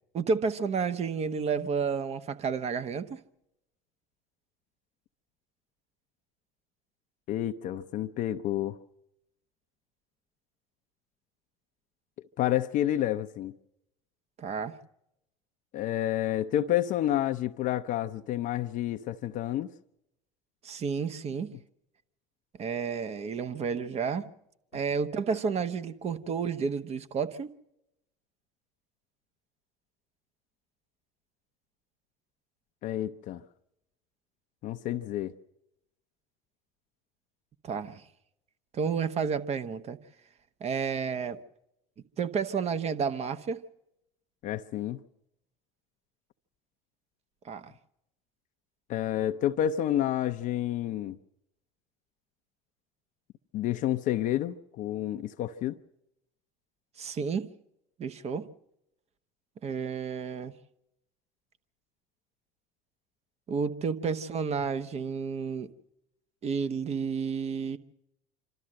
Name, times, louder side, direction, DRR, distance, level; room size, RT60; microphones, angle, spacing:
voice 1, 0.1-3.2 14.4-14.7 20.6-21.5 22.6-24.3 24.7-27.5 37.6-38.0 38.7-40.0 40.6-41.4 42.2-43.6 47.4-47.7 57.0-57.5 58.0-58.5 59.6-60.5 63.5-65.7 66.4-67.8, right 6 dB, 40° right, 1.1 m, -31 dB
voice 2, 7.3-8.8 12.4-13.5 15.7-19.7 32.8-33.4 34.6-35.3 44.4-45.0 48.9-51.2 53.5-55.8, left 12 dB, 55° left, 0.6 m, -29 dB
26.5 x 13.0 x 7.7 m
hypercardioid pair, 85°, 17 cm